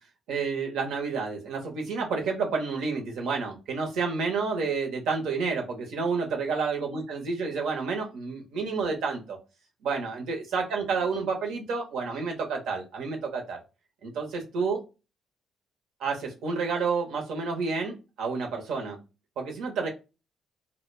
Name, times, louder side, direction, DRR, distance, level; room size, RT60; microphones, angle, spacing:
voice 1, 0.3-9.4 9.8-13.6 14.0-14.8 16.0-19.0 19.4-19.9, right 4 dB, 85° right, 2 dB, 0.8 m, -30 dB
2.1 x 2.1 x 3.2 m, 0.28 s
cardioid pair, 90°, 0 cm